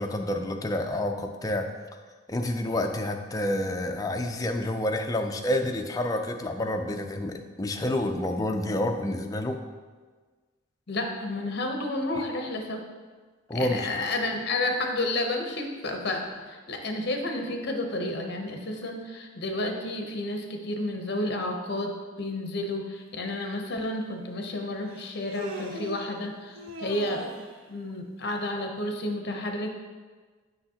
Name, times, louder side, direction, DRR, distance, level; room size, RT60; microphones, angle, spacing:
voice 1, 0.0-1.7 2.3-9.6 13.5-13.8, left 1 dB, 15° left, 4 dB, 0.4 m, -28 dB
voice 2, 10.9-12.8 13.5-21.9 22.2-27.4 27.7-29.7, left 2 dB, 55° left, 3 dB, 0.8 m, -31 dB
Human voice, 23.5-23.6 24.9-26.1 26.6-27.6, right 1 dB, 85° right, 0.8 m, -39 dB
7.9 x 5.7 x 2.9 m, 1.4 s
head